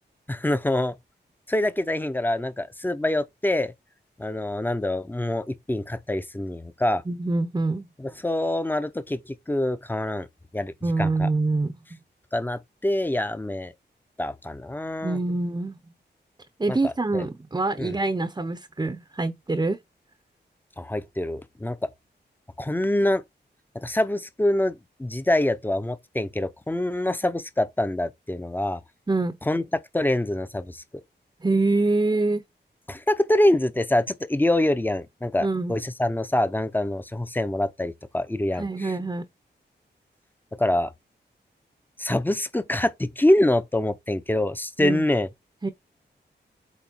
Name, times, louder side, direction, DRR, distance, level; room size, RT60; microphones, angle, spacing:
voice 1, 0.3-0.9 1.5-3.7 4.2-7.0 8.0-10.3 10.5-11.3 12.3-13.7 14.2-15.2 16.7-17.2 17.8-17.9 20.8-21.9 22.6-23.2 23.7-28.8 29.4-29.6 29.9-30.8 32.9-38.9 40.6-40.9 42.0-45.3, left 1 dB, 10° left, 0.8 m, -25 dB
voice 2, 7.1-7.9 10.8-11.7 15.0-15.8 16.6-19.8 29.1-29.4 31.4-32.4 35.4-35.7 38.6-39.3 44.8-45.0 45.6-45.7, right 3 dB, 20° right, 0.8 m, -25 dB
8.3 x 3.0 x 4.6 m
wide cardioid pair, 95°, 18 cm